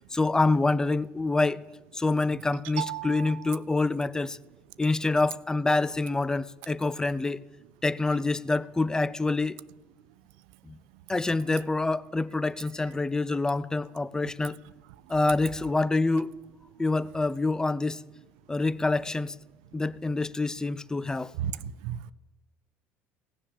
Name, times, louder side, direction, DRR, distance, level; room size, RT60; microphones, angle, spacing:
voice 1, 0.1-1.6 1.9-4.4 4.8-7.4 7.8-9.6 10.7-10.8 11.1-14.6 15.1-16.3 16.8-18.0 18.5-19.3 19.7-21.3, left 3 dB, 10° left, 0.5 m, -26 dB
voice 2, 2.8-3.5 21.4-22.1, right 11 dB, 85° right, 0.5 m, -34 dB
17.5 x 7.3 x 7.0 m
supercardioid pair, 95°, 5 cm